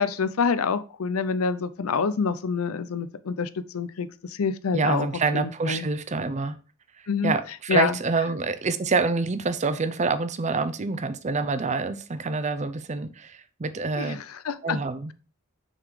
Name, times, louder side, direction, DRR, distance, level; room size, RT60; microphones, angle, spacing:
voice 1, 0.0-5.1 5.3-5.9 7.1-7.3 7.7-8.0 13.9-14.2 14.4-14.8, left 5 dB, 90° left, 0.5 m, -26 dB
voice 2, 4.7-6.6 7.2-14.2 14.6-15.1, right 4 dB, 35° right, 0.6 m, -27 dB
6.3 x 4.0 x 4.7 m
head